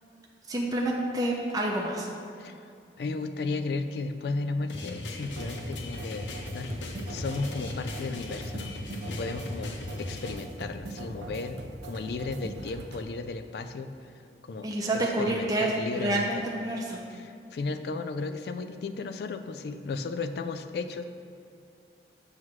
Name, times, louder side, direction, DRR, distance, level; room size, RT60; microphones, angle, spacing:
voice 1, 0.5-2.1 14.6-17.0, right 1 dB, 20° right, -2 dB, 0.6 m, -28 dB
voice 2, 3.0-6.8 7.1-8.8 9.1-9.7 10.0-11.6 11.8-13.9 14.4-14.7 15.2-16.4 17.1-21.0, left 3 dB, 60° left, 9 dB, 0.3 m, -34 dB
sound 1, 4.7-10.3, left 2 dB, 90° left, 0.7 m, -38 dB
sound 2, 5.2-13.0, right 1 dB, 85° right, 0.7 m, -41 dB
7.4 x 3.1 x 5.9 m, 2.6 s
head